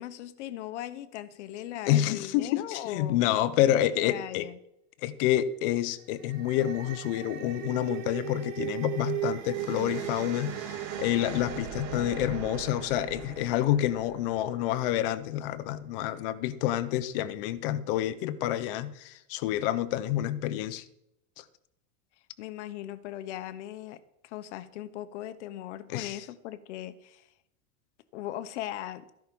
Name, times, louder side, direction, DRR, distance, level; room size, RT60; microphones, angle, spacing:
voice 1, 0.0-4.6 22.4-27.3 28.1-29.1, left 12 dB, 60° left, 12 dB, 1.3 m, -39 dB
voice 2, 1.9-4.5 5.0-20.8 21.4-21.5 25.9-26.2, left 12 dB, 40° left, 13 dB, 1.0 m, -28 dB
sound 1, 6.0-15.3, right 10 dB, 60° right, 3.8 m, -38 dB
14.5 x 11.0 x 5.4 m, 0.81 s
supercardioid pair, 175°, 40 cm